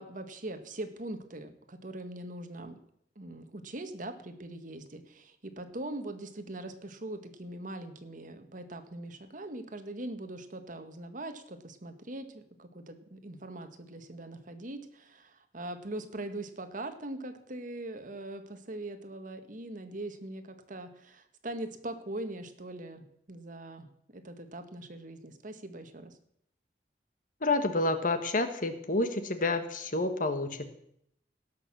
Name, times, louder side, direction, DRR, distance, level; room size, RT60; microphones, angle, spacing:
voice 1, 0.0-2.8 3.1-23.9 24.1-26.1, right 1 dB, 50° right, 8 dB, 1.4 m, -41 dB
voice 2, 27.4-30.7, left 2 dB, 50° left, 9 dB, 1.4 m, -29 dB
17.5 x 6.5 x 7.4 m, 0.72 s
head